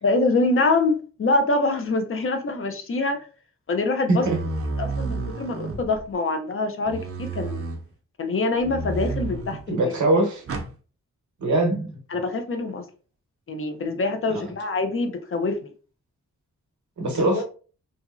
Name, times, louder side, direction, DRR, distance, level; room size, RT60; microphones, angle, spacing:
voice 1, 0.0-3.2 3.7-4.2 4.8-7.6 8.2-9.9 12.1-12.8 13.5-15.7 17.3-17.4, left 3 dB, 45° left, 6 dB, 0.5 m, -25 dB
sound 1, 4.2-6.1 6.9-7.8 8.6-9.7 10.5-10.7, right 3 dB, 50° right, 0.5 m, -30 dB
voice 2, 9.7-10.4 11.4-12.0 14.3-14.5 17.0-17.4, right 2 dB, 80° right, 2 dB, 0.9 m, -22 dB
2.8 x 2.6 x 2.4 m, 0.39 s
wide cardioid pair, 120°, 29 cm